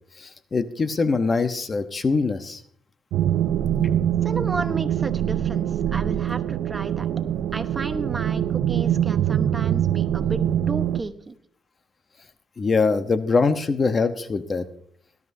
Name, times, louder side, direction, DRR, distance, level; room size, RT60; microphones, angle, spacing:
voice 1, 0.2-2.6 12.6-14.7, left 4 dB, 35° left, 10 dB, 0.9 m, -23 dB
sound 1, 3.1-11.0, right 10 dB, 85° right, 0.5 m, -24 dB
voice 2, 4.2-7.1 7.5-11.3, right 3 dB, 25° right, 9 dB, 1.0 m, -33 dB
19.0 x 12.0 x 2.7 m, 0.64 s
cardioid pair, 90°, 0 cm